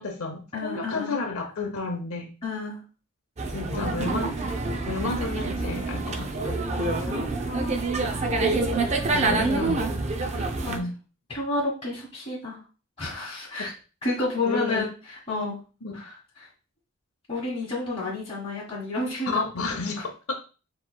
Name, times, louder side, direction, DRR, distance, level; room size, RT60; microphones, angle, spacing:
voice 1, 0.0-2.3 3.5-4.6 4.9-6.6 9.1-9.9 10.7-11.0 13.6-13.7 14.4-14.9 15.8-15.9 19.3-20.3, left 3 dB, 80° left, 2 dB, 0.7 m, -31 dB
voice 2, 0.5-1.2 2.4-2.8 3.7-3.9 6.7-7.8 8.7-8.9 9.2-9.7 10.3-10.8 11.3-12.6 13.0-13.7 14.0-15.5 15.9-16.2 17.3-19.4 20.0-20.1, left 2 dB, 25° left, -7 dB, 1.5 m, -31 dB
sound 1, 3.4-10.8, right 3 dB, 30° right, 0.5 m, -27 dB
6.9 x 3.0 x 2.2 m, 0.35 s
head